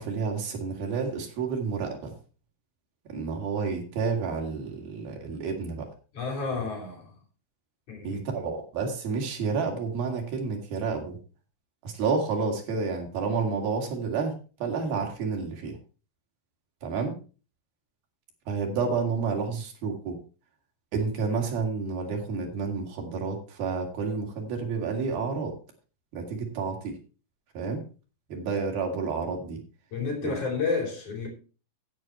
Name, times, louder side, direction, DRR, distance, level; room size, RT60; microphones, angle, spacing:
voice 1, 0.0-2.1 3.1-5.9 8.0-11.2 11.8-15.8 16.8-17.2 18.5-20.2 20.9-25.5 26.1-27.0 27.5-27.8 28.3-29.6 30.2-30.4, right 5 dB, 85° right, 4.4 m, -30 dB
voice 2, 6.1-7.2 7.9-8.2 29.9-31.3, left 4 dB, 55° left, 4.8 m, -30 dB
11.0 x 8.8 x 4.5 m
omnidirectional pair, 4.1 m